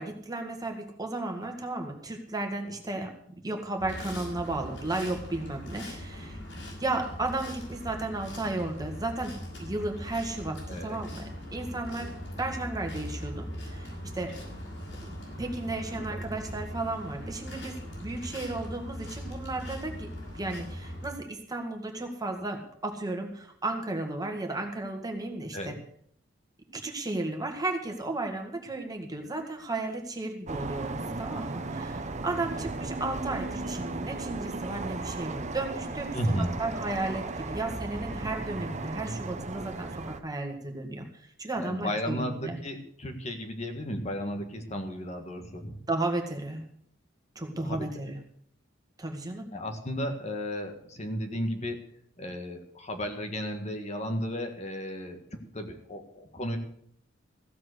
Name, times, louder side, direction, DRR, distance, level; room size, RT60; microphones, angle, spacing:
voice 1, 0.0-3.1 3.4-6.4 6.8-11.2 11.5-12.1 12.4-13.9 14.1-14.3 15.1-25.7 26.7-36.1 36.6-42.6 45.9-46.6 47.4-48.2 49.0-49.5, right 2 dB, 20° right, 4 dB, 1.9 m, -34 dB
sound 1, 3.8-21.1, equal, 75° left, 6.1 m, -40 dB
voice 2, 10.7-11.0 15.9-16.2 25.5-25.7 36.1-36.5 41.6-45.8 47.5-48.1 49.5-51.8 52.2-55.2 55.5-56.6, equal, 35° left, 5 dB, 1.7 m, -34 dB
sound 2, 30.5-40.2, right 2 dB, 35° right, 1.0 m, -36 dB
15.5 x 7.6 x 7.9 m, 0.65 s
head